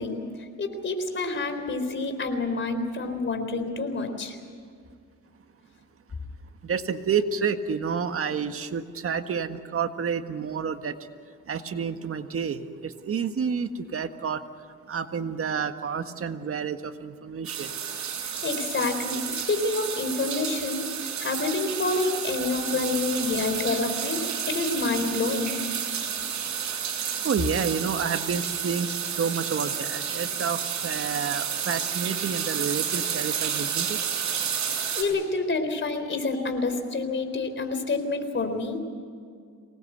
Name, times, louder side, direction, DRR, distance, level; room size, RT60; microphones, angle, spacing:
voice 1, 0.0-4.4 18.2-25.6 34.9-38.8, left 3 dB, 40° left, 7 dB, 4.0 m, -28 dB
voice 2, 6.6-11.0 11.5-14.4 14.9-17.7 27.2-34.0, right 6 dB, 45° right, 8 dB, 1.6 m, -29 dB
sound 1, 17.4-35.0, right 8 dB, 70° right, 6.1 m, -31 dB
25.0 x 19.5 x 8.1 m, 2.2 s
cardioid pair, 90°, 30 cm